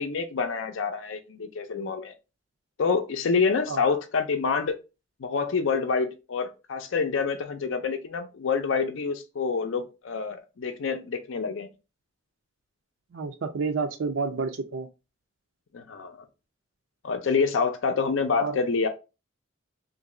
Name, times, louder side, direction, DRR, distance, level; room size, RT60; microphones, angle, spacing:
voice 1, 0.0-2.1 2.8-4.8 5.2-11.7 15.7-16.2 17.0-18.9, left 5 dB, 70° left, 0.5 m, -27 dB
voice 2, 13.1-14.9 18.4-18.6, right 4 dB, 70° right, 0.4 m, -29 dB
3.0 x 2.5 x 3.7 m
head